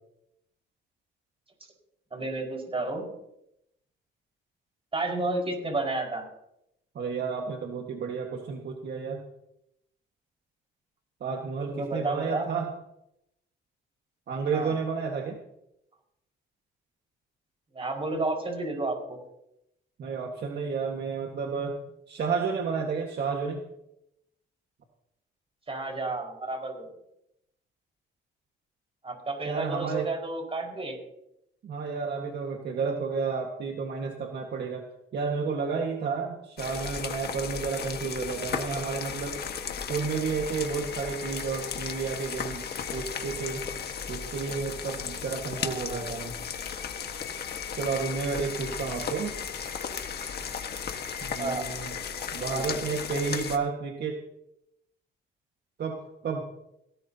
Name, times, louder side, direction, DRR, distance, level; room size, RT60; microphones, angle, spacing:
voice 1, 2.1-3.1 4.9-6.3 11.7-12.5 14.5-14.8 17.7-19.2 25.7-26.9 29.0-31.0 45.6-46.1 51.4-51.7 52.5-52.8, right 2 dB, 30° right, 1 dB, 5.4 m, -31 dB
voice 2, 7.0-9.2 11.2-12.7 14.3-15.4 20.0-21.8 22.1-23.6 29.4-30.1 31.6-34.8 35.1-39.4 39.9-42.7 42.9-43.6 44.1-46.3 47.8-49.3 51.2-51.9 52.3-54.2 55.8-56.4, right 5 dB, 55° right, 2 dB, 1.8 m, -31 dB
sound 1, 36.6-53.6, left 7 dB, 55° left, 1.6 m, -35 dB
18.0 x 17.5 x 2.9 m, 0.83 s
cardioid pair, 90°, 20 cm